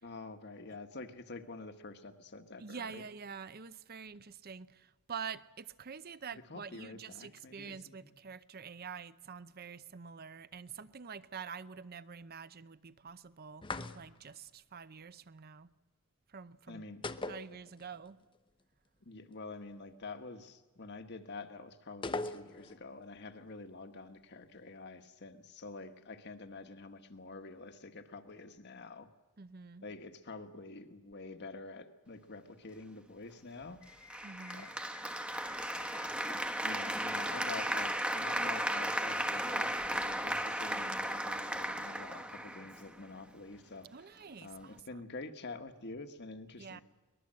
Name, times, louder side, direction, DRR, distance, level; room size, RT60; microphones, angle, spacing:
voice 1, 0.0-3.0 6.3-8.2 16.7-17.1 19.0-29.1 29.8-33.8 34.5-34.7 35.7-43.9 44.4-46.8, left 3 dB, 55° left, 1.6 m, -47 dB
voice 2, 2.6-15.7 16.3-16.9 17.3-18.2 29.4-29.8 34.2-34.7 40.7-41.1 43.9-44.8 46.6-46.8, right 6 dB, 50° right, 0.7 m, -47 dB
sound 1, 13.6-14.3 17.0-18.1 18.3-18.4 22.0-22.8, left 3 dB, 25° left, 0.8 m, -39 dB
sound 2, 33.8-39.8, left 6 dB, 80° left, 3.3 m, -57 dB
Applause, 34.1-43.1, right 1 dB, 5° right, 1.0 m, -35 dB
23.0 x 20.0 x 7.7 m
head